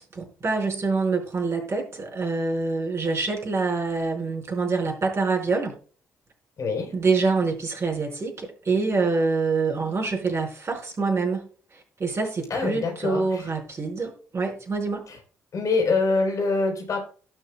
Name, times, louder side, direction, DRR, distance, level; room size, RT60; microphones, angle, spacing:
voice 1, 0.0-5.7 6.9-11.5 11.7-15.0, right 4 dB, 40° right, 1 dB, 4.9 m, -26 dB
voice 2, 6.6-6.9 12.5-13.4 15.5-17.0, left 3 dB, 50° left, 2 dB, 3.9 m, -24 dB
18.0 x 6.5 x 2.2 m, 0.41 s
figure-of-eight pair, 40°, 7 cm